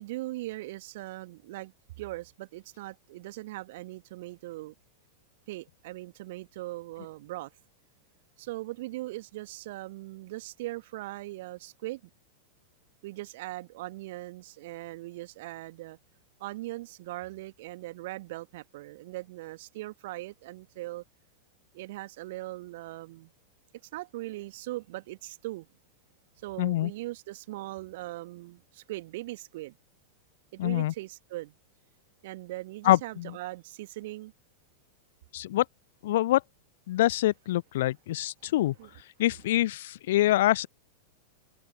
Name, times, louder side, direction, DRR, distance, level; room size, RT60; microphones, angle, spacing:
voice 1, 0.0-4.7 5.5-7.5 8.4-12.0 13.0-16.0 16.4-21.0 21.7-23.3 23.9-25.7 26.4-29.8 30.5-31.6 32.2-34.3 38.4-38.5 38.8-38.9, right 18 dB, 50° right, 1.9 m, -40 dB
voice 2, 26.6-26.9 30.6-30.9 32.8-33.3 35.3-35.6 36.0-36.4 36.9-38.7 39.2-40.7, left 15 dB, 55° left, 0.4 m, -25 dB
figure-of-eight pair, 90°, 0 cm